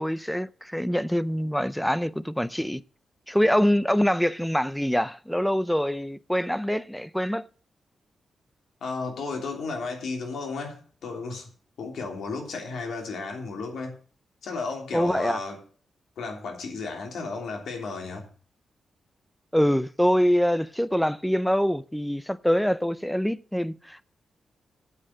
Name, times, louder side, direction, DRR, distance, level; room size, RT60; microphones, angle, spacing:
voice 1, 0.0-2.8 3.3-7.4 14.9-15.4 19.5-24.1, equal, ahead, 0.4 m, -24 dB
voice 2, 8.8-11.5 11.8-14.0 14.4-15.6 16.2-18.3, left 4 dB, 85° left, 3.2 m, -34 dB
8.6 x 7.6 x 7.3 m
wide cardioid pair, 150°, 0 cm